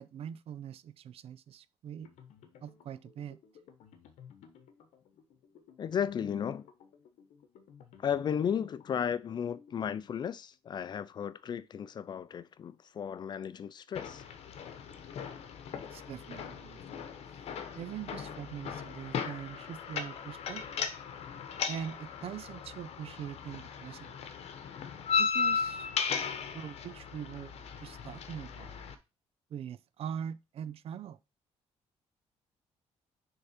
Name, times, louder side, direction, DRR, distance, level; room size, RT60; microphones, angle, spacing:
voice 1, 0.0-2.1 2.6-3.4 15.9-17.1 17.7-20.6 21.7-24.2 25.2-25.9 26.5-28.7 29.5-31.2, right 9 dB, 60° right, 0.5 m, -42 dB
sound 1, 2.0-10.6, left 7 dB, 90° left, 1.1 m, -57 dB
voice 2, 5.8-6.7 8.0-14.2, left 8 dB, 40° left, 0.4 m, -34 dB
sound 2, 14.0-29.0, left 6 dB, 65° left, 0.9 m, -37 dB
6.5 x 3.7 x 4.3 m
cardioid pair, 145°, 11 cm